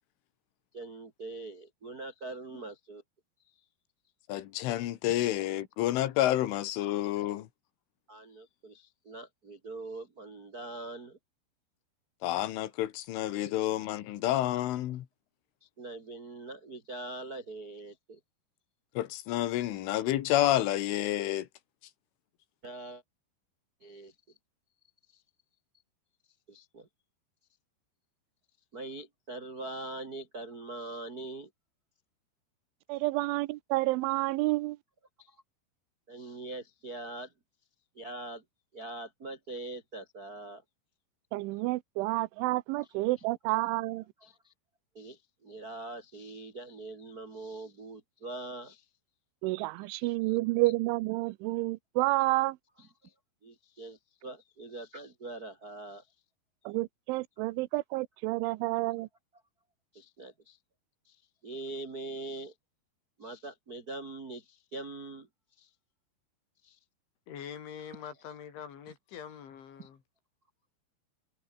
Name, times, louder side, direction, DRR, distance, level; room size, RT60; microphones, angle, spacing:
voice 1, 0.7-3.0 5.0-5.1 8.1-11.2 13.4-13.5 15.6-18.2 22.6-23.0 23.8-24.1 25.1-25.2 26.5-26.9 28.7-31.5 35.2-35.3 36.1-37.3 37.9-38.4 38.7-40.6 42.8-42.9 44.2-44.5 44.9-48.8 50.1-50.4 52.8-53.1 53.4-56.0 59.9-60.6 61.0-61.1 61.4-62.5 63.2-65.3 65.6-65.7 66.6-66.8 69.8-69.9, right 2 dB, 50° right, 1.1 m, -43 dB
voice 2, 4.3-7.5 12.2-15.1 19.0-21.5, left 14 dB, 90° left, 4.1 m, -29 dB
voice 3, 32.9-34.8 41.3-44.0 49.4-52.6 56.7-59.1, right 20 dB, 85° right, 3.1 m, -29 dB
voice 4, 67.3-70.0, left 8 dB, 75° left, 6.0 m, -44 dB
omnidirectional pair, 5.5 m